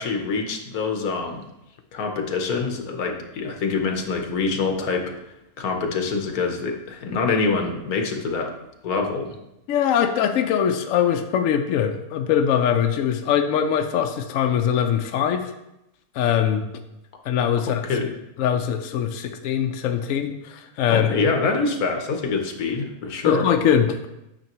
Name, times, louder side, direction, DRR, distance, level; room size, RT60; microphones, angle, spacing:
voice 1, 0.0-1.4 1.9-5.1 5.6-8.5 8.8-9.4 17.7-18.1 20.9-23.4, left 4 dB, 90° left, 4 dB, 1.4 m, -25 dB
voice 2, 9.7-15.5 16.1-16.7 17.3-17.8 18.4-21.1 23.2-24.1, left 8 dB, 70° left, 6 dB, 0.9 m, -22 dB
8.9 x 5.9 x 3.0 m, 0.88 s
omnidirectional pair, 1.5 m